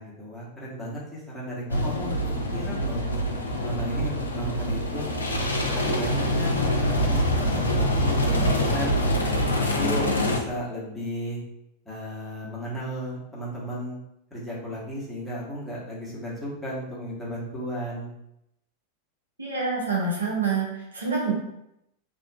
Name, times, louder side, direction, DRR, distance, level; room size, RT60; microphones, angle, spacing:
voice 1, 0.0-2.2 2.5-3.0 3.6-5.1 5.5-9.0 9.6-11.4 11.8-14.0 14.3-18.1, equal, 5° left, -8 dB, 1.0 m, -34 dB
sound 1, 1.7-10.4, equal, 75° left, 0.3 m, -25 dB
voice 2, 19.4-21.3, right 4 dB, 75° right, -4 dB, 0.7 m, -27 dB
2.5 x 2.3 x 2.3 m, 0.82 s
figure-of-eight pair, 90°, 0 cm